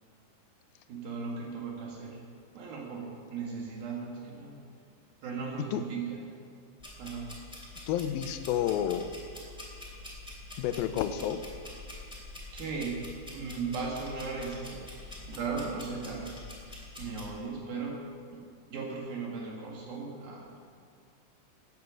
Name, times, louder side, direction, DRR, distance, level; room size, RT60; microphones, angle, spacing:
voice 1, 0.9-2.2 2.5-4.6 5.2-6.2 7.0-7.3 12.5-13.0 13.3-18.0 18.3-18.4 18.7-20.5, right 4 dB, 70° right, -2 dB, 3.4 m, -37 dB
sound 1, 6.8-17.3, left 2 dB, ahead, 2.1 m, -46 dB
voice 2, 7.9-9.1 10.6-11.4, left 10 dB, 80° left, 10 dB, 2.3 m, -30 dB
15.5 x 8.6 x 6.3 m, 2.2 s
omnidirectional pair, 4.6 m